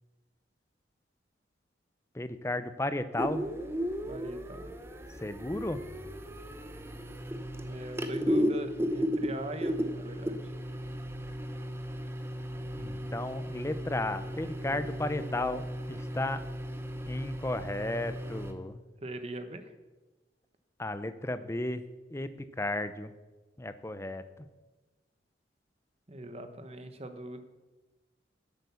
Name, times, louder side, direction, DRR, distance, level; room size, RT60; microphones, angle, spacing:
voice 1, 2.1-3.5 5.2-5.8 12.8-15.6 15.9-16.4 17.1-18.8 20.8-21.8 22.1-22.3 22.6-23.1 23.6-24.5, left 2 dB, 15° left, 11 dB, 0.6 m, -34 dB
sound 1, 3.2-18.5, equal, 15° right, 0.8 m, -35 dB
voice 2, 4.1-4.7 7.6-10.5 19.0-19.7 26.1-27.4, right 1 dB, 35° right, 8 dB, 1.1 m, -41 dB
10.5 x 8.3 x 7.0 m, 1.2 s
head